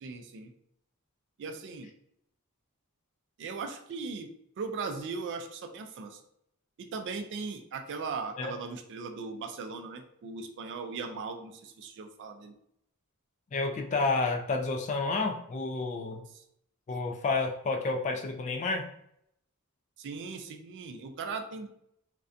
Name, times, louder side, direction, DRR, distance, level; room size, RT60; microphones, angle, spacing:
voice 1, 0.0-0.5 1.4-1.9 3.4-6.2 6.8-12.5 16.3-16.4 20.0-21.7, right 4 dB, 55° right, 5 dB, 0.3 m, -38 dB
voice 2, 13.5-16.2 16.9-18.9, left 3 dB, 35° left, 4 dB, 0.3 m, -30 dB
2.5 x 2.1 x 2.4 m, 0.73 s
head